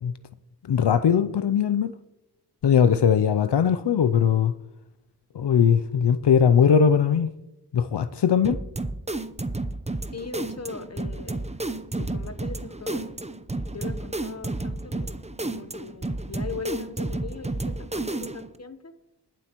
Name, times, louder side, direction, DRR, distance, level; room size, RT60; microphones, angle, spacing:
voice 1, 0.7-1.9 2.6-4.5 5.3-7.3 7.7-8.6, left 7 dB, 80° left, 0.5 m, -20 dB
sound 1, 8.4-18.6, right 2 dB, 15° right, 0.6 m, -31 dB
voice 2, 10.1-11.4 12.0-13.1 13.7-15.1 15.4-18.9, left 4 dB, 40° left, 1.0 m, -39 dB
20.5 x 7.6 x 3.0 m
wide cardioid pair, 55°, 41 cm